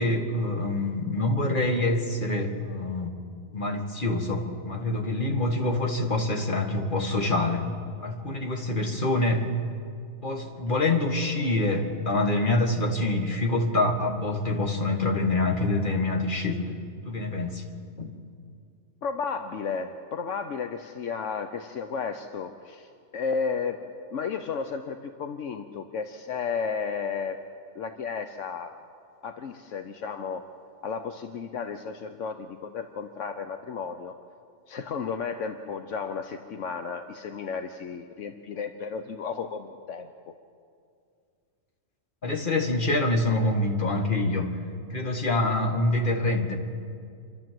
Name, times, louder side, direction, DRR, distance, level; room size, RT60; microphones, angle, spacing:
voice 1, 0.0-3.1 3.5-7.7 8.0-9.5 10.2-16.6 17.1-17.6 18.0-18.1 42.2-44.5 44.9-46.6, left 2 dB, 40° left, 2 dB, 2.0 m, -26 dB
voice 2, 19.0-23.8 24.1-27.4 27.7-28.7 29.2-30.5 30.8-34.1 34.7-40.1, left 5 dB, 75° left, 7 dB, 1.1 m, -33 dB
28.0 x 12.0 x 7.7 m, 2.4 s
omnidirectional pair, 1.3 m